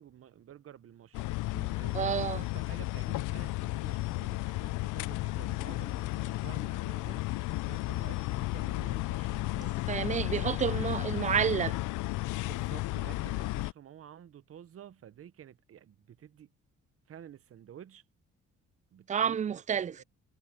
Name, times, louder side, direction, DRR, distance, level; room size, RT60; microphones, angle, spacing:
voice 1, 0.0-10.6 10.9-11.1 12.4-16.5 17.1-18.0 18.9-19.4 19.7-20.0, right 10 dB, 50° right, 0.8 m, -51 dB
sound 1, 1.1-13.7, left 20 dB, 85° left, 0.5 m, -33 dB
voice 2, 1.5-2.5 9.9-11.8 19.1-20.0, right 8 dB, 25° right, 0.4 m, -30 dB
sound 2, 4.6-9.6, left 7 dB, 50° left, 5.6 m, -51 dB
cardioid pair, 90°, 30 cm